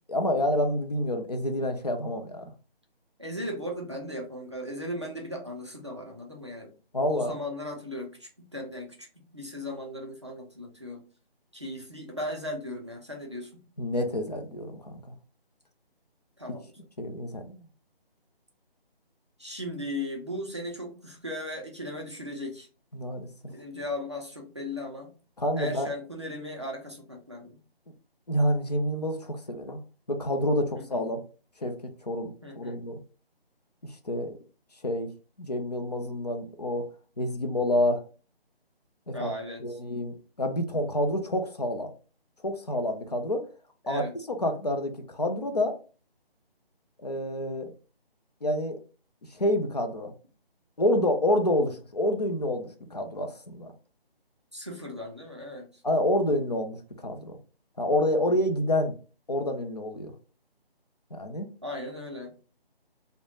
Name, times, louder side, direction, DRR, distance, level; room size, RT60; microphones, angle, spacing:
voice 1, 0.1-2.4 6.9-7.4 13.8-15.1 17.0-17.7 22.9-23.3 25.4-25.9 28.3-29.8 30.1-31.2 31.6-33.0 34.0-34.4 34.8-35.1 35.4-36.9 37.2-38.0 39.1-39.3 39.6-41.9 42.4-43.5 43.9-45.8 47.0-47.7 48.4-48.8 49.3-50.1 50.8-53.7 55.8-57.4 57.8-59.0 59.3-60.1 61.1-61.5, left 1 dB, 45° left, 4 dB, 0.4 m, -28 dB
voice 2, 3.2-6.7 7.0-11.0 11.5-13.7 16.4-16.7 19.4-22.7 23.5-25.1 25.6-27.6 30.8-31.1 32.4-32.8 39.1-39.8 43.8-44.2 54.5-55.7 61.6-62.3, left 1 dB, 30° right, 0 dB, 0.4 m, -37 dB
3.0 x 2.1 x 2.3 m, 0.35 s
figure-of-eight pair, 165°, 31 cm